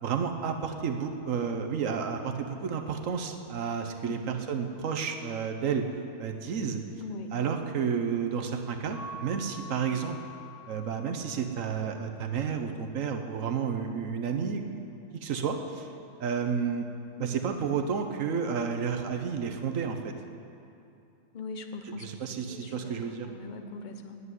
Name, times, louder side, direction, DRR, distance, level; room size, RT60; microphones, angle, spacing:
voice 1, 0.0-5.8 6.2-6.8 7.3-10.2 10.7-14.6 15.2-15.9 16.2-16.9 17.2-20.1 21.8-23.3, right 6 dB, 60° right, 5 dB, 1.1 m, -31 dB
voice 2, 7.0-7.3 21.3-22.0 22.3-24.2, left 3 dB, 45° left, 6 dB, 0.6 m, -41 dB
Keyboard (musical) / Bell, 8.9-11.3, left 1 dB, 65° left, 2.3 m, -45 dB
9.9 x 8.1 x 9.6 m, 2.7 s
omnidirectional pair, 1.7 m